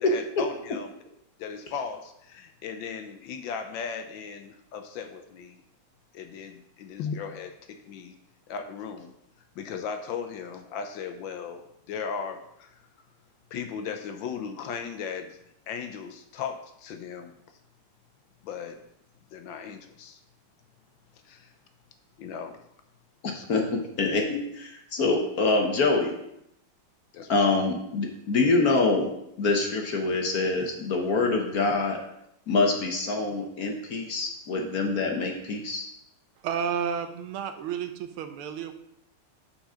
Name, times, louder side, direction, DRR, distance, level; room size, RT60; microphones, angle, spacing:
voice 1, 0.0-0.9 1.4-5.6 6.1-8.1 8.5-9.1 9.5-12.7 13.5-15.4 15.7-17.3 18.4-18.8 19.3-20.2 21.2-21.5 22.2-22.6 23.3-23.5 27.1-27.3, left 6 dB, 70° left, 7 dB, 1.3 m, -37 dB
voice 2, 23.2-26.1 27.3-29.1 29.4-32.0 32.5-35.9, left 3 dB, 55° left, 2 dB, 1.2 m, -25 dB
voice 3, 36.4-38.7, right 7 dB, 90° right, 8 dB, 1.6 m, -31 dB
6.0 x 5.0 x 5.5 m, 0.79 s
omnidirectional pair, 2.3 m